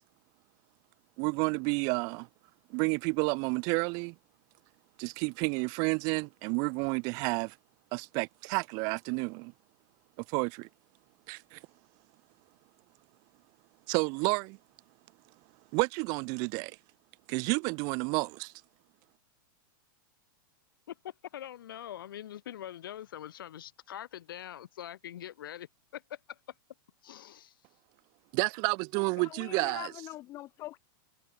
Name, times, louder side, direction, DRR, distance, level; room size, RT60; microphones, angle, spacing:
voice 1, 1.2-2.3 2.7-4.1 5.0-7.6 7.9-9.5 10.3-10.7 11.3-11.6 13.9-14.6 15.7-16.8 17.3-18.5 28.3-29.9, right 33 dB, 35° right, 0.6 m, -30 dB
voice 2, 20.9-25.7 25.9-26.4 27.0-27.5, left 11 dB, 80° left, 2.2 m, -43 dB
voice 3, 29.2-30.8, left 15 dB, 25° left, 3.2 m, -43 dB
supercardioid pair, 160°, 11 cm